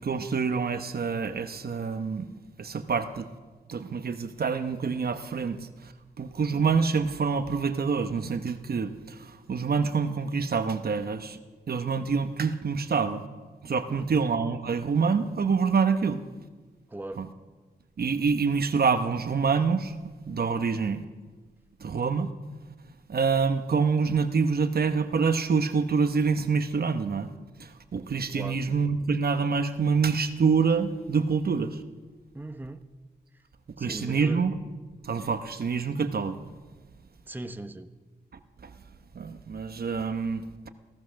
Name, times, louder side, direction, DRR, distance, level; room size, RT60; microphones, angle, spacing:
voice 1, 0.0-2.3 2.6-3.3 3.7-5.7 6.2-11.4 11.7-13.2 13.6-16.2 17.2-17.3 18.0-20.0 20.2-21.0 21.8-22.3 23.1-27.3 27.6-31.8 33.8-34.7 35.0-36.4 38.6-38.7 39.1-40.7, right 5 dB, 60° right, 0.9 m, -26 dB
voice 2, 13.9-14.2 16.9-17.2 28.3-28.6 32.3-32.8 33.8-34.4 37.3-37.9, right 2 dB, 10° right, 0.8 m, -39 dB
16.5 x 14.0 x 6.4 m
wide cardioid pair, 100°, 18 cm